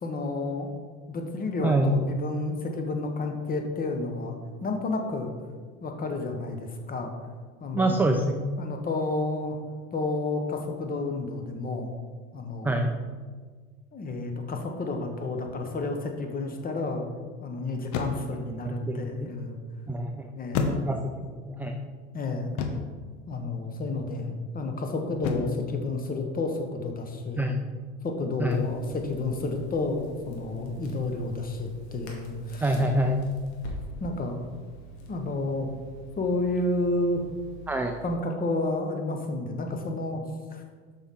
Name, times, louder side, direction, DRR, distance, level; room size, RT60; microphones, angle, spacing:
voice 1, 0.0-0.7 1.1-4.4 4.6-5.3 5.8-7.1 7.6-8.1 8.6-9.6 9.9-11.9 12.3-12.9 13.9-17.0 17.4-19.6 20.4-20.7 22.1-22.5 23.3-27.5 28.0-32.7 34.0-34.4 35.0-35.7 36.2-37.2 38.0-40.2 40.5-40.6, left 2 dB, 25° left, 4 dB, 1.1 m, -30 dB
voice 2, 1.6-1.9 7.7-8.5 12.6-12.9 18.7-19.3 19.9-20.3 20.9-21.1 21.5-21.8 27.4-27.6 28.4-28.6 32.6-33.3 37.7-37.9, right 1 dB, 5° right, 3 dB, 0.4 m, -26 dB
sound 1, 15.4-15.8 17.9-18.4 20.5-21.3 22.6-23.0 25.2-25.7, left 4 dB, 60° left, 1.0 m, -30 dB
Crackle, 28.5-38.1, right 2 dB, 75° left, 1.9 m, -45 dB
7.2 x 5.7 x 3.7 m, 1.5 s
supercardioid pair, 95°, 33 cm